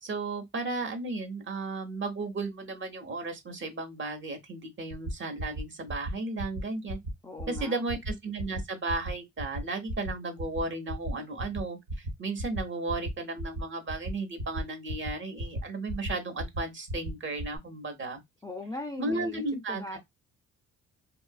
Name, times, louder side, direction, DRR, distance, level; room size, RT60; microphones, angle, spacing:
voice 1, 0.0-7.0 7.5-11.8 12.2-18.2 19.0-20.0, right 3 dB, 40° right, 1.0 m, -34 dB
sound 1, 4.9-5.1 5.4-5.6 5.9-6.1 6.4-6.6 6.9-7.1 7.4-7.6 7.9-8.1 8.4-8.6 8.9-9.1 9.4-9.6 9.9-10.1 10.4-10.6 10.9-11.1 11.4-11.6 11.9-12.1 12.4-12.6 12.9-13.1 13.4-13.6 13.9-14.1 14.4-14.6 14.9-15.1 15.4-15.6 15.9-16.1 16.4-16.6 16.9-17.1 17.4-17.6, equal, 85° right, 1.0 m, -34 dB
voice 2, 7.2-7.9 18.4-19.4 19.7-20.0, left 2 dB, 10° left, 0.4 m, -38 dB
2.7 x 2.4 x 2.3 m
cardioid pair, 90°, 30 cm